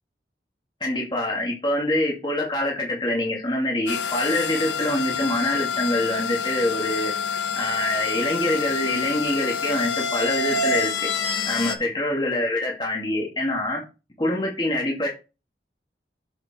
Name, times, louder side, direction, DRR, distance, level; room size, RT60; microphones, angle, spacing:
voice 1, 0.8-11.1 11.5-13.8 14.2-15.1, left 1 dB, 25° left, -2 dB, 2.2 m, -25 dB
sound 1, 3.9-11.8, left 5 dB, 85° left, 1.1 m, -27 dB
8.1 x 5.0 x 4.4 m, 0.30 s
head